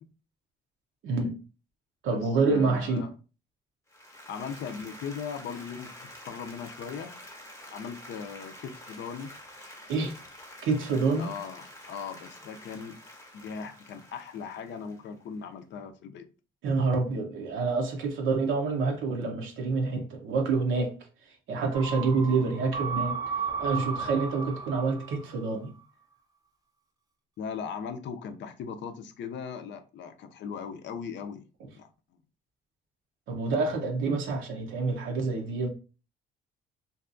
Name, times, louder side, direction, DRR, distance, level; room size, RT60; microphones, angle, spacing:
voice 1, 1.0-1.4 2.0-3.1 9.9-10.1 10.6-11.3 16.6-20.9 21.5-23.2 23.6-25.7 33.3-35.7, right 4 dB, 75° right, 0.6 m, -27 dB
voice 2, 2.1-3.1 4.3-7.1 7.7-9.3 11.2-13.0 13.3-16.2 27.4-31.4 31.7-31.9, left 6 dB, 65° left, 0.4 m, -39 dB
Applause, 3.9-15.2, left 1 dB, 15° left, 0.8 m, -48 dB
sound 1, 21.7-25.5 25.8-25.9, right 5 dB, 20° right, 0.6 m, -34 dB
2.6 x 2.3 x 2.5 m
cardioid pair, 90°, 20 cm